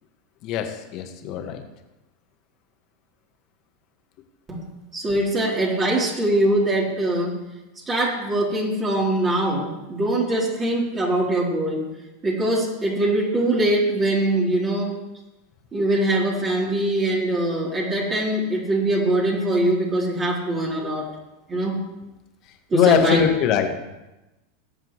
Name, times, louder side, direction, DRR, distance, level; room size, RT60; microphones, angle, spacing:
voice 1, 0.4-1.6 16.6-16.8 22.7-23.8, left 9 dB, 50° left, 5 dB, 1.7 m, -22 dB
voice 2, 4.9-7.4 7.9-11.9 12.2-15.0 15.7-21.1 21.5-21.8 22.7-23.3, right 1 dB, 30° right, -4 dB, 3.5 m, -22 dB
19.5 x 7.7 x 3.2 m, 1.0 s
hypercardioid pair, 90°, 0 cm